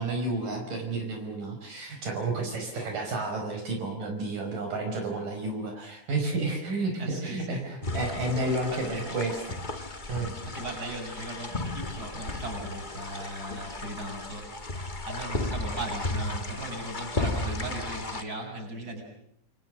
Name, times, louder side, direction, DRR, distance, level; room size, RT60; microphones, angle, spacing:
voice 1, 0.0-10.3, right 2 dB, 65° right, 3 dB, 6.5 m, -31 dB
voice 2, 7.0-7.6 8.9-9.2 10.4-19.0, right 1 dB, 25° right, 3 dB, 8.1 m, -37 dB
sound 1, 7.8-18.2, left 2 dB, 45° left, 0.6 m, -35 dB
29.0 x 28.5 x 6.4 m, 0.75 s
omnidirectional pair, 4.2 m